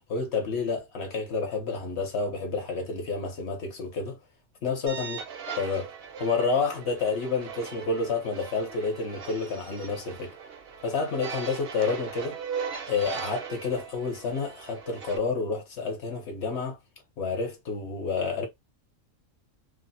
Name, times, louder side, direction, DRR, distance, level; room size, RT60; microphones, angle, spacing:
voice 1, 0.1-4.2 4.6-5.2 5.6-5.9 6.2-10.3 10.8-12.4 12.9-16.8 17.2-18.5, left 4 dB, 55° left, 1.0 m, -29 dB
sound 1, 4.9-15.2, right 6 dB, 60° right, 0.6 m, -39 dB
3.1 x 2.0 x 2.6 m
omnidirectional pair, 1.4 m